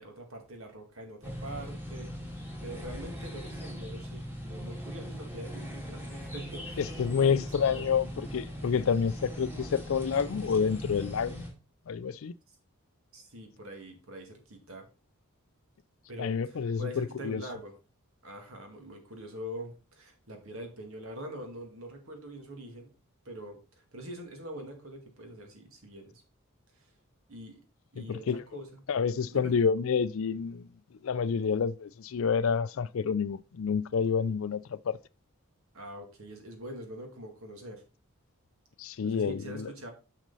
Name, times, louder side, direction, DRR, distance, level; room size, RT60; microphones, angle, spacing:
voice 1, 0.0-6.9 7.2-7.9 13.1-14.9 16.1-17.7 18.2-22.9 23.3-26.2 26.7-26.9 27.3-27.6 27.9-28.8 29.3-29.5 31.4-31.5 35.7-37.8 39.0-39.9, right 1 dB, 65° right, 2.1 m, -44 dB
sound 1, 1.2-11.5, equal, 10° right, 2.0 m, -40 dB
voice 2, 6.8-11.4 11.9-12.3 16.2-17.4 28.0-28.4 28.9-30.7 31.0-35.0 38.8-39.7, left 6 dB, 60° left, 0.4 m, -29 dB
6.7 x 6.1 x 4.0 m
head